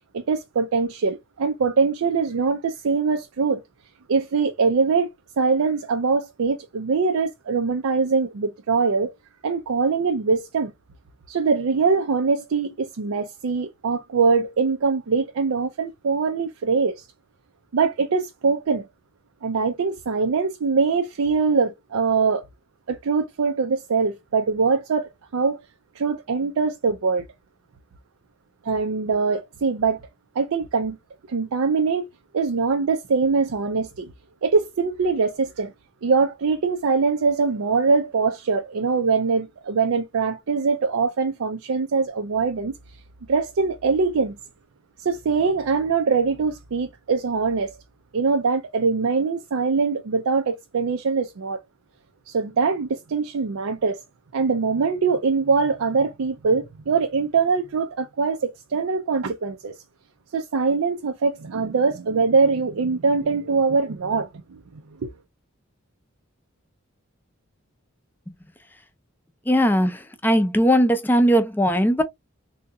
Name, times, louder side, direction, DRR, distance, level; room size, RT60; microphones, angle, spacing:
voice 1, 0.1-3.6 4.1-5.1 5.4-9.1 9.4-10.7 11.3-17.1 17.7-18.9 19.4-22.4 22.9-25.6 26.0-27.2 28.6-30.0 30.4-31.0 31.3-32.1 32.3-34.1 34.4-35.7 36.0-42.7 43.3-44.4 45.0-47.8 48.1-51.6 52.3-54.0 54.3-59.7 60.3-65.1, right 4 dB, 85° right, 0.5 m, -23 dB
voice 2, 69.5-72.0, equal, 10° left, 0.4 m, -19 dB
3.7 x 2.7 x 2.2 m
head